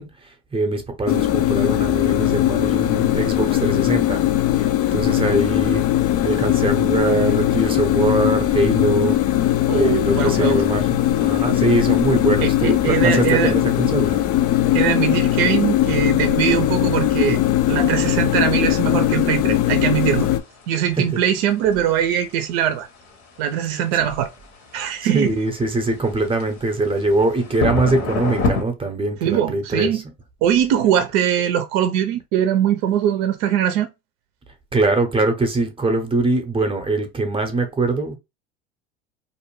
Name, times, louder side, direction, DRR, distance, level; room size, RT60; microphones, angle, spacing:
voice 1, 0.0-4.2 4.5-5.8 6.2-9.2 9.7-14.2 21.0-21.1 23.7-23.9 25.0-30.0 34.7-38.2, right 2 dB, 15° right, 0.7 m, -22 dB
sound 1, 1.1-20.4, left 13 dB, 55° left, 0.5 m, -19 dB
voice 2, 9.7-10.6 12.4-13.5 14.7-17.4 17.7-20.3 20.7-22.9 23.4-24.3 24.7-25.3 29.2-30.0 30.4-33.9, right 10 dB, 70° right, 0.5 m, -21 dB
sound 2, 18.8-28.6, left 3 dB, 70° left, 1.2 m, -30 dB
2.6 x 2.1 x 3.0 m
hypercardioid pair, 85°, 31 cm